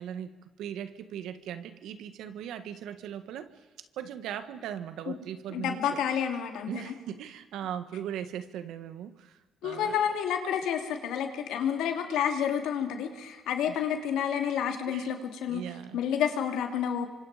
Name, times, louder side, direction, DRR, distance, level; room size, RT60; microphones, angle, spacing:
voice 1, 0.0-3.5 4.0-6.0 6.7-10.0 13.7-13.8 14.9-15.2 15.5-16.0, right 9 dB, 85° right, 10 dB, 1.7 m, -39 dB
voice 2, 5.5-6.9 9.6-15.6 15.9-17.1, left 8 dB, 90° left, 5 dB, 3.0 m, -29 dB
27.0 x 25.0 x 5.1 m, 1.3 s
cardioid pair, 90°, 0 cm